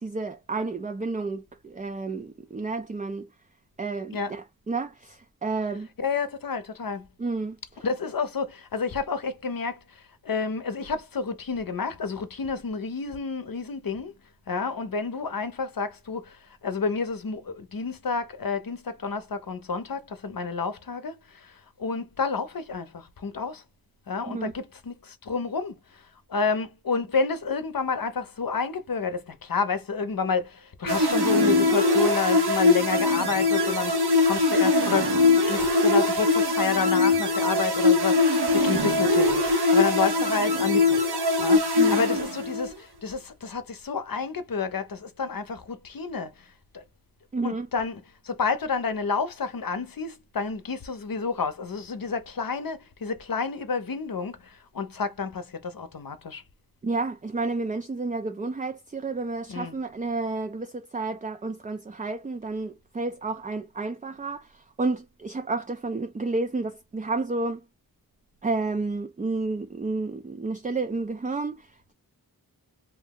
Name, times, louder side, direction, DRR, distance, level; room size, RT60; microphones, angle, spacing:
voice 1, 0.0-3.3 3.8-5.9 7.2-7.8 24.3-24.5 41.8-42.0 47.3-47.7 56.8-67.6 68.4-71.9, right 3 dB, 20° right, 0.3 m, -31 dB
voice 2, 6.0-7.1 7.8-9.8 10.2-14.1 14.5-16.4 16.6-21.1 21.8-23.6 24.1-25.7 26.3-41.1 41.4-46.3 46.7-46.8 47.4-48.0 48.2-54.4 54.7-56.4 59.5-59.8, left 5 dB, 65° left, 0.7 m, -29 dB
sound 1, 30.9-42.7, left 2 dB, 85° right, 0.9 m, -22 dB
2.6 x 2.0 x 3.5 m
wide cardioid pair, 45°, 38 cm